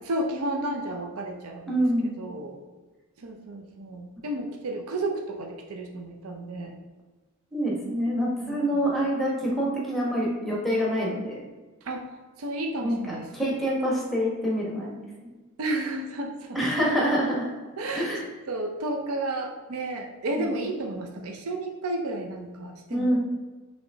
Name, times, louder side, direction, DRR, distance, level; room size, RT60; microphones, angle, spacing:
voice 1, 0.0-1.8 2.2-2.6 3.2-6.8 8.4-8.8 11.8-12.1 12.4-13.3 15.6-16.6 17.8-18.1 18.5-23.2, right 1 dB, 80° right, 2 dB, 0.5 m, -32 dB
voice 2, 1.7-2.1 7.5-11.4 12.8-15.0 16.5-17.5 17.9-18.2 20.4-20.5 22.9-23.2, equal, ahead, -4 dB, 1.1 m, -26 dB
5.7 x 3.2 x 2.7 m, 1.3 s
head